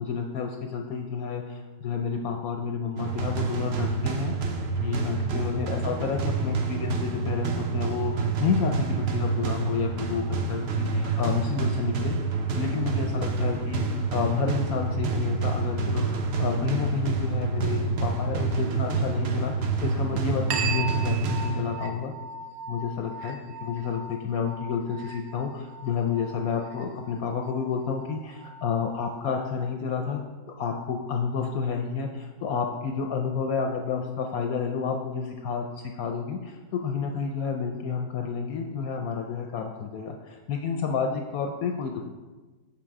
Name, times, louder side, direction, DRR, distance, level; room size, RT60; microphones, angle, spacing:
voice 1, 0.0-4.3 4.8-12.2 12.5-22.1 22.7-30.2 30.6-42.0, left 6 dB, 70° left, 3 dB, 0.9 m, -30 dB
sound 1, 3.0-21.9, right 4 dB, 60° right, 0.6 m, -28 dB
sound 2, 20.5-29.5, right 4 dB, 85° right, 1.4 m, -38 dB
6.6 x 5.8 x 4.7 m, 1.3 s
omnidirectional pair, 1.9 m